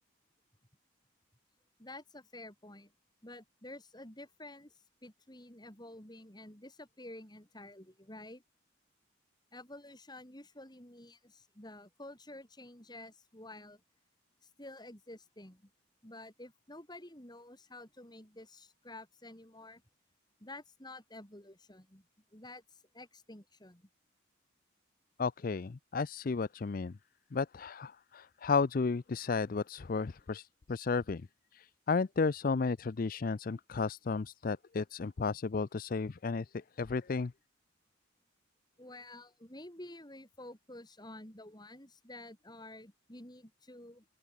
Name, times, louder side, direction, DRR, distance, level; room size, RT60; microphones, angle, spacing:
voice 1, 1.8-2.9 3.2-8.4 9.5-13.8 14.4-15.7 16.0-19.8 20.4-22.0 22.3-23.9 38.8-44.1, left 1 dB, 20° left, 3.7 m, -50 dB
voice 2, 25.2-26.9 27.3-31.2 31.5-36.5 36.8-37.3, left 4 dB, 45° left, 0.4 m, -33 dB
open air
head